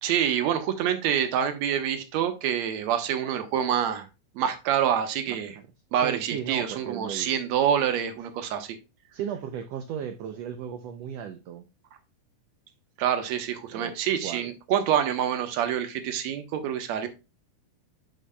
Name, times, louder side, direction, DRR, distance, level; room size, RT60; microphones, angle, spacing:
voice 1, 0.0-4.1 4.4-5.6 5.9-8.8 13.0-17.1, right 9 dB, 65° right, 2.1 m, -26 dB
voice 2, 5.3-5.7 6.0-7.3 9.1-11.6 13.7-14.5, right 8 dB, 85° right, 1.4 m, -36 dB
11.0 x 5.3 x 2.2 m
omnidirectional pair, 3.7 m